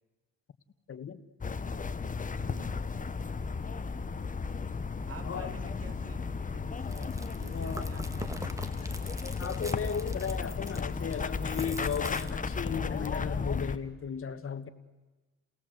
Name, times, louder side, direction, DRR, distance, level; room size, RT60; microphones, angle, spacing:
voice 1, 0.9-1.2 5.2-5.5 7.5-7.9 9.4-14.7, left 7 dB, 45° left, 1.5 m, -35 dB
sound 1, 1.4-13.8, left 4 dB, 25° left, 1.1 m, -34 dB
voice 2, 2.4-2.9 5.0-8.4 8.7-9.1, right 4 dB, 50° right, 3.3 m, -51 dB
Chewing mastication, 6.8-12.8, right 1 dB, 10° right, 1.9 m, -44 dB
30.0 x 18.0 x 8.0 m
cardioid pair, 90°, 30 cm